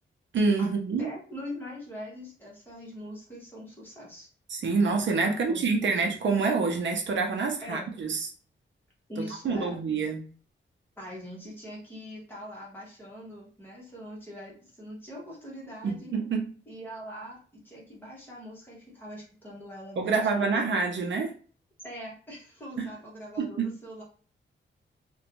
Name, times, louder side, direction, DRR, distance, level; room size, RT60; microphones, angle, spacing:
voice 1, 0.3-1.1 4.5-8.3 9.2-10.2 15.8-16.5 20.0-21.3 22.8-22.9 23.4-23.7, right 4 dB, 65° right, 3 dB, 0.5 m, -27 dB
voice 2, 1.0-4.3 5.2-6.1 7.6-7.9 9.1-9.8 11.0-16.1 16.7-17.4 17.6-20.8 21.8-24.0, equal, 10° left, -5 dB, 0.9 m, -42 dB
2.5 x 2.2 x 2.9 m, 0.41 s
wide cardioid pair, 175°, 20 cm